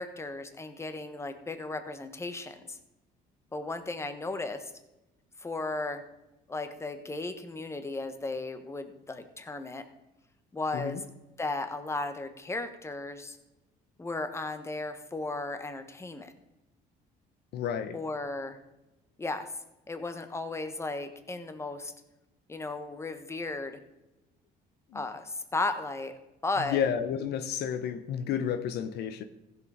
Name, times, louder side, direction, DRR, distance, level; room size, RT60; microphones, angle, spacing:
voice 1, 0.0-2.8 3.5-4.7 5.4-6.0 6.5-9.8 10.5-11.0 11.4-13.4 14.0-16.3 17.9-18.6 19.2-19.5 19.9-21.9 22.5-23.8 24.9-26.1 26.4-26.8, left 2 dB, 15° left, 9 dB, 1.2 m, -35 dB
voice 2, 17.5-18.0 24.9-25.0 26.6-29.2, left 8 dB, 75° left, 11 dB, 0.9 m, -31 dB
15.0 x 6.8 x 4.9 m, 0.96 s
cardioid pair, 110°, 17 cm